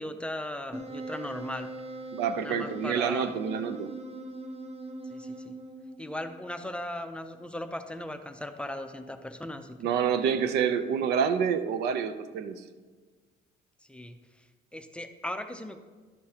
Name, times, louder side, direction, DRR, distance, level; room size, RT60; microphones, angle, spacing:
voice 1, 0.0-1.7 2.4-3.3 5.0-5.6 6.0-10.1 13.9-15.8, left 1 dB, 5° left, 6 dB, 0.5 m, -38 dB
Wind instrument woodwind instrument, 0.7-6.1, right 1 dB, 35° right, 1.0 m, -41 dB
voice 2, 2.1-3.9 9.8-12.6, right 7 dB, 80° right, 10 dB, 0.6 m, -27 dB
11.5 x 6.8 x 2.8 m, 1.4 s
cardioid pair, 110°, 17 cm